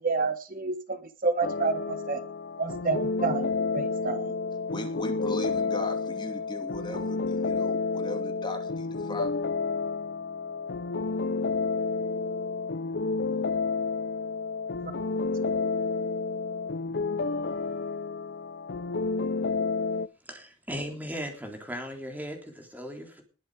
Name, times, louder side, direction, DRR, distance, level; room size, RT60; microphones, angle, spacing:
voice 1, 0.0-2.2 2.6-4.3, right 4 dB, 45° right, 9 dB, 1.2 m, -29 dB
sound 1, 1.4-20.1, left 4 dB, 55° left, 0.6 m, -30 dB
voice 2, 4.7-9.3, left 1 dB, 20° left, 4 dB, 2.7 m, -38 dB
voice 3, 20.3-23.2, equal, 10° right, 3 dB, 3.6 m, -37 dB
20.5 x 8.1 x 5.0 m, 0.36 s
head